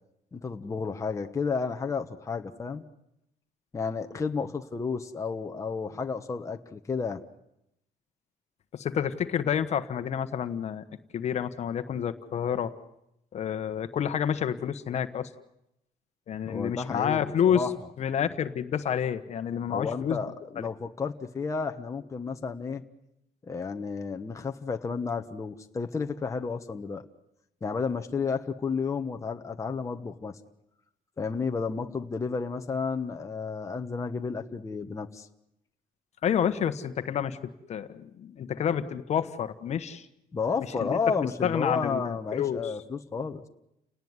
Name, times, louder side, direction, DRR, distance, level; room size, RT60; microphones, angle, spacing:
voice 1, 0.3-2.8 3.7-7.2 16.4-17.7 19.7-22.8 23.4-27.1 27.6-30.4 31.2-35.3 40.3-43.4, left 5 dB, 20° left, 4 dB, 1.2 m, -32 dB
voice 2, 8.7-10.8 11.1-12.7 13.3-15.3 16.3-17.6 18.0-20.2 20.6-20.7 36.2-37.4 37.7-40.1 40.8-41.0 41.4-42.7, left 8 dB, 45° left, 9 dB, 1.3 m, -29 dB
30.0 x 18.5 x 9.7 m, 0.83 s
cardioid pair, 140°, 15 cm